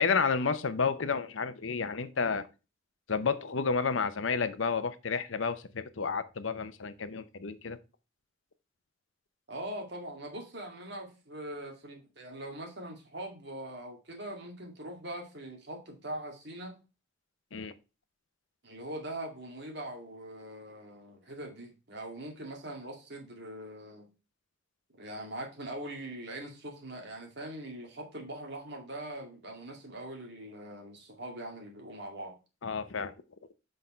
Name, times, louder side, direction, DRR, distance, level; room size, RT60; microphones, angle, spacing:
voice 1, 0.0-2.5 3.1-7.8 17.5-17.7 32.6-33.1, left 5 dB, 80° left, 0.8 m, -31 dB
voice 2, 9.5-16.8 18.6-24.1 24.9-32.3, right 1 dB, 60° right, 2.4 m, -42 dB
6.4 x 5.4 x 4.3 m
head